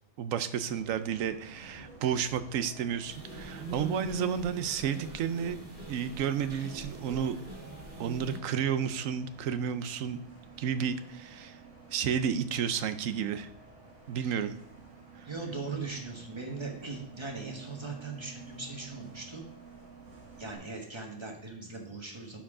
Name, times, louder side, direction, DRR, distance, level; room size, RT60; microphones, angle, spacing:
voice 1, 0.2-5.6 5.9-7.4 8.0-10.2 10.6-11.6 11.9-13.5 14.1-14.5, right 8 dB, 90° right, 12 dB, 1.0 m, -31 dB
Bus, 0.7-20.5, right 4 dB, 65° right, 1.8 m, -52 dB
sound 1, 3.1-8.4, right 1 dB, 50° right, 2.1 m, -42 dB
voice 2, 15.2-19.5 20.4-22.4, right 3 dB, 20° right, 1 dB, 1.4 m, -39 dB
11.5 x 4.7 x 3.7 m, 0.66 s
omnidirectional pair, 1.3 m